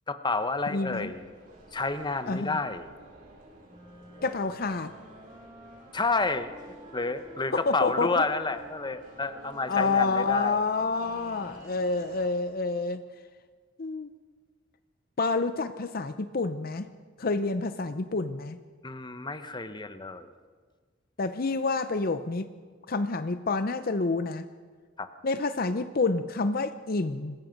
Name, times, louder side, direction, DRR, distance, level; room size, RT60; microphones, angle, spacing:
voice 1, 0.1-1.2 1.7-2.9 5.9-6.5 6.9-10.6 18.8-20.2 25.0-25.1, left 3 dB, 25° left, 10 dB, 1.0 m, -30 dB
voice 2, 0.7-1.1 2.3-2.6 4.2-4.9 7.5-8.2 9.7-13.0 13.8-14.1 15.2-16.9 17.2-18.6 21.2-22.5 22.9-24.4 25.2-27.3, left 3 dB, 50° left, 11 dB, 0.7 m, -28 dB
sound 1, 0.7-12.3, right 1 dB, 45° right, 5.6 m, -52 dB
Wind instrument woodwind instrument, 3.7-11.9, equal, 25° right, 5.0 m, -52 dB
25.5 x 19.5 x 5.3 m, 1.5 s
head